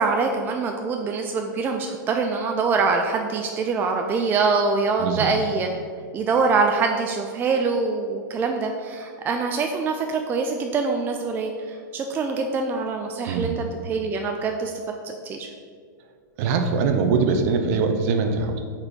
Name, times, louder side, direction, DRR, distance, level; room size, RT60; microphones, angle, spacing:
voice 1, 0.0-5.7 6.1-14.7 15.0-15.5, right 4 dB, 20° right, 3 dB, 0.3 m, -24 dB
voice 2, 16.4-18.6, right 5 dB, 50° right, 6 dB, 0.7 m, -22 dB
4.2 x 4.2 x 5.2 m, 2.1 s
hypercardioid pair, 125°, 10 cm